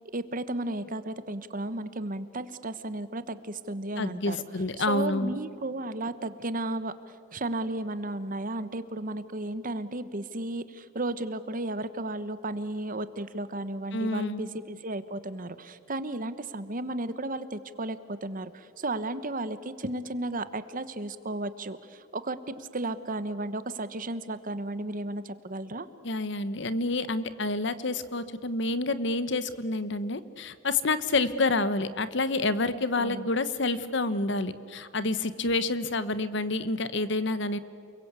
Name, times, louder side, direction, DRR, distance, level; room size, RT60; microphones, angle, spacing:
voice 1, 0.1-25.9 33.0-33.3, right 2 dB, 45° right, 13 dB, 1.2 m, -34 dB
voice 2, 4.0-5.3 13.9-14.5 26.0-37.6, left 2 dB, 70° left, 14 dB, 1.2 m, -28 dB
29.5 x 22.5 x 8.3 m, 2.3 s
head